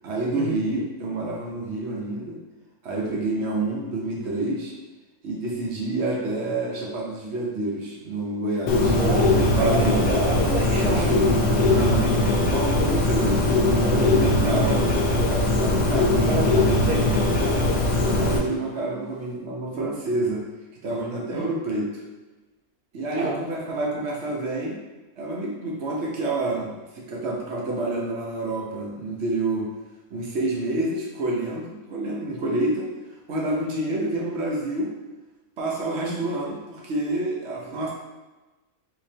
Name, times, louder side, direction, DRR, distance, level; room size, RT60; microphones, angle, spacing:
voice 1, 0.0-2.4 2.8-4.7 5.2-9.0 9.6-10.1 10.6-12.1 12.4-13.4 13.8-16.1 16.5-16.7 18.1-20.4 20.8-22.0 22.9-24.8 25.2-29.7 30.1-32.9 33.3-34.9 35.6-37.9, right 2 dB, 60° right, -3 dB, 0.8 m, -28 dB
Bird, 8.7-18.4, left 2 dB, 85° left, 1.2 m, -21 dB
voice 2, 9.0-11.2 14.5-14.6 16.2-16.5 16.8-17.1 17.4-17.6 21.3-21.5 23.1-23.4 36.0-36.2, right 3 dB, 75° right, -2 dB, 1.2 m, -29 dB
3.8 x 2.8 x 2.7 m, 1.2 s
omnidirectional pair, 1.6 m